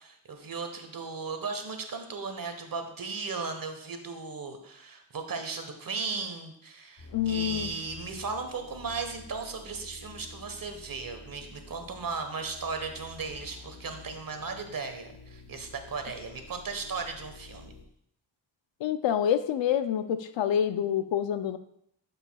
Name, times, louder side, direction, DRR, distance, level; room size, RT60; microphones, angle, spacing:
voice 1, 0.0-17.7, right 4 dB, 50° right, 6 dB, 1.2 m, -36 dB
sound 1, 7.0-17.8, left 2 dB, 55° left, 1.4 m, -49 dB
voice 2, 7.1-7.7 18.8-21.6, left 9 dB, 85° left, 11 dB, 0.6 m, -27 dB
11.5 x 5.4 x 2.3 m, 0.73 s
cardioid pair, 60°, 43 cm